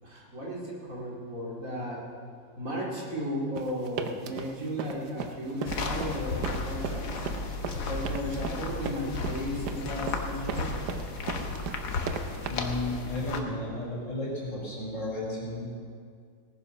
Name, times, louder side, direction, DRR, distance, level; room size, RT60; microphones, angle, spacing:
voice 1, 0.0-2.0 2.6-7.2 7.9-10.9, equal, 50° right, -4 dB, 3.0 m, -35 dB
sound 1, 3.6-12.5, right 7 dB, 75° right, 1.4 m, -37 dB
sound 2, 5.7-13.4, left 3 dB, 70° left, 1.7 m, -34 dB
voice 2, 12.5-15.6, left 2 dB, 45° left, -4 dB, 4.5 m, -33 dB
18.5 x 9.9 x 6.0 m, 2.2 s
omnidirectional pair, 1.8 m